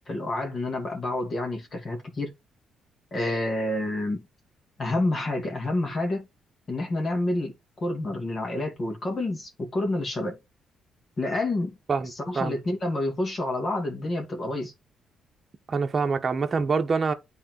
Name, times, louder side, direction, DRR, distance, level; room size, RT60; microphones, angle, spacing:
voice 1, 0.1-2.3 3.1-4.3 4.8-6.3 6.7-7.5 7.8-10.4 11.2-11.8 12.0-14.7, left 2 dB, 40° left, 2.4 m, -28 dB
voice 2, 11.9-12.6 15.7-17.1, right 4 dB, 35° right, 1.1 m, -25 dB
8.7 x 3.9 x 4.5 m
cardioid pair, 90°, 0 cm